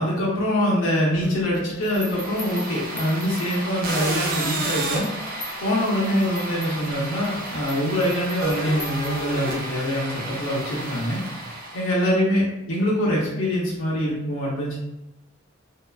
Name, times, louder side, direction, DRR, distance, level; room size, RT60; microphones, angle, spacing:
voice 1, 0.0-5.1 5.6-11.2 11.5-14.8, equal, 80° left, -6 dB, 0.7 m, -24 dB
sound 1, 1.2-4.0 4.5-9.6, left 1 dB, 20° left, 0.6 m, -42 dB
sound 2, 1.9-12.1, right 2 dB, 45° right, 0.4 m, -32 dB
2.7 x 2.2 x 2.3 m, 0.92 s
head